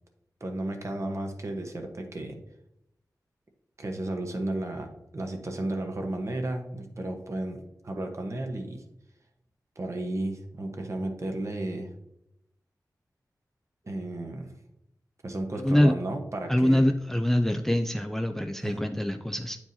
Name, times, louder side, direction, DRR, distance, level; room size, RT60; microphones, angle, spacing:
voice 1, 0.4-2.4 3.8-8.8 9.8-11.9 13.8-14.5 15.2-16.8 18.6-18.8, right 1 dB, 45° right, 3 dB, 1.1 m, -33 dB
voice 2, 16.5-19.6, left 1 dB, 5° left, 6 dB, 0.4 m, -24 dB
9.0 x 4.6 x 2.8 m, 0.85 s
wide cardioid pair, 80°, 7 cm